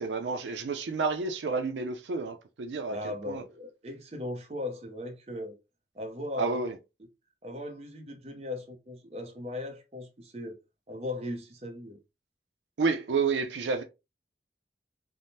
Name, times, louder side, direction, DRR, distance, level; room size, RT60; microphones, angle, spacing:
voice 1, 0.0-3.4 6.4-6.8 12.8-13.8, right 4 dB, 90° right, 0.4 m, -30 dB
voice 2, 2.9-5.6 5.9-6.6 7.4-10.6 10.9-12.0, left 2 dB, 35° right, 0.7 m, -38 dB
3.4 x 2.0 x 2.7 m
head